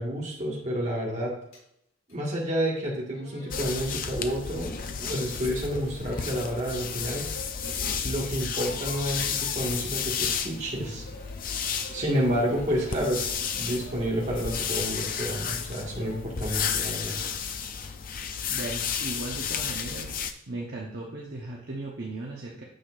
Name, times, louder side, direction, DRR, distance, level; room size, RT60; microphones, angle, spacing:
voice 1, 0.0-1.4 2.1-4.7 5.0-7.3 8.0-11.1 11.9-17.2, equal, 35° right, -3 dB, 1.8 m, -30 dB
sound 1, 1.5-1.6 2.1-2.2 2.8-2.9 3.1-3.8 4.7-5.4 5.9-8.0 8.3-9.6 10.6-16.3, left 1 dB, 85° left, 2.5 m, -47 dB
sound 2, 3.5-20.3, left 7 dB, 45° left, 0.5 m, -32 dB
voice 2, 18.5-20.2 20.5-22.6, right 2 dB, 50° right, -3 dB, 1.1 m, -37 dB
9.0 x 6.5 x 2.5 m, 0.75 s
head